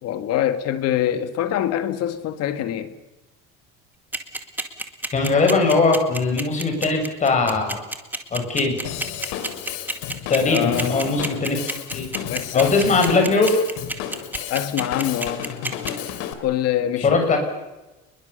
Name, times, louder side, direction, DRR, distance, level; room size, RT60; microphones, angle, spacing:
voice 1, 0.0-2.9 10.4-11.2 12.3-12.8 14.5-15.5 16.4-17.4, left 11 dB, 55° left, 2.1 m, -25 dB
sound 1, 4.1-15.9, right 2 dB, 5° right, 2.1 m, -28 dB
voice 2, 5.1-7.8 8.3-8.8 10.3-12.1 12.5-13.6 17.0-17.4, left 3 dB, 25° left, 6.9 m, -20 dB
Drum kit / Drum, 8.8-16.3, left 10 dB, 75° left, 3.3 m, -32 dB
28.0 x 22.0 x 6.9 m
cardioid pair, 160°, 30 cm